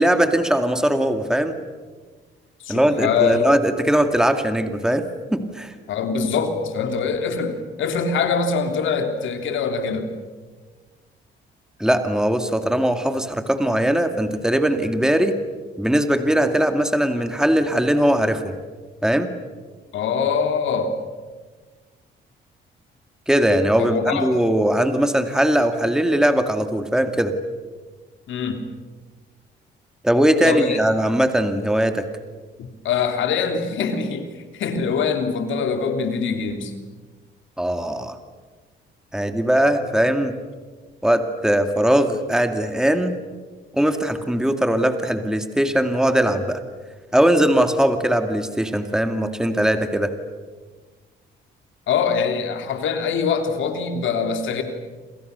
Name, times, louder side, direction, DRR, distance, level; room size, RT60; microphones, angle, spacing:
voice 1, 0.0-1.6 2.7-5.7 11.8-15.4 15.8-18.6 19.0-19.3 23.3-27.3 30.0-32.1 37.6-38.2 39.1-40.4 41.0-43.1 43.7-46.6 47.1-50.1, right 1 dB, 5° right, 7 dB, 2.4 m, -20 dB
voice 2, 2.6-3.4 5.9-10.1 19.9-21.0 23.8-24.3 28.3-28.6 30.4-30.8 32.6-36.7 51.9-54.6, left 5 dB, 75° left, 6 dB, 3.5 m, -23 dB
28.5 x 27.5 x 6.9 m, 1.4 s
cardioid pair, 90°, 20 cm